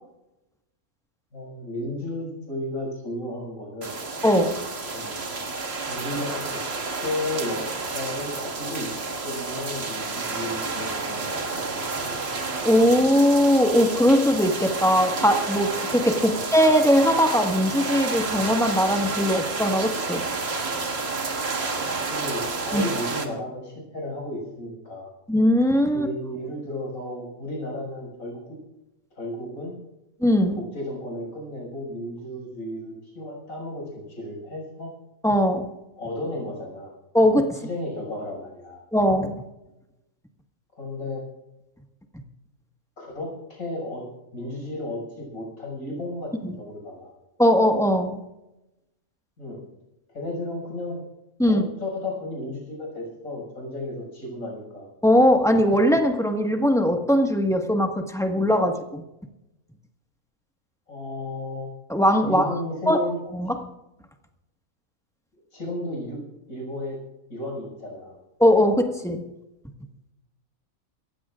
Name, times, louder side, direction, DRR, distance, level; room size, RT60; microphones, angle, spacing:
voice 1, 1.3-4.0 4.9-5.4 5.9-6.6 7.0-7.6 7.9-8.9 9.2-12.1 16.3-16.4 21.8-25.1 25.9-28.6 29.2-29.7 30.6-34.9 36.0-36.9 37.6-38.8 40.8-41.2 43.0-44.0 44.3-47.1 49.4-49.6 50.1-51.0 51.4-54.9 60.9-61.7 62.2-63.2 65.5-66.2 66.5-67.0 67.3-68.2, left 1 dB, 85° left, -1 dB, 6.8 m, -33 dB
sound 1, 3.8-23.3, right 3 dB, 50° right, 1.9 m, -30 dB
voice 2, 4.2-4.6 12.6-20.2 22.7-22.9 25.3-26.1 30.2-30.6 35.2-35.7 37.1-37.6 38.9-39.4 47.4-48.2 51.4-51.7 55.0-59.0 61.9-62.5 62.9-63.0 63.3-63.7 68.4-69.2, equal, ahead, 3 dB, 1.5 m, -20 dB
27.0 x 15.5 x 2.5 m, 0.93 s
omnidirectional pair, 1.4 m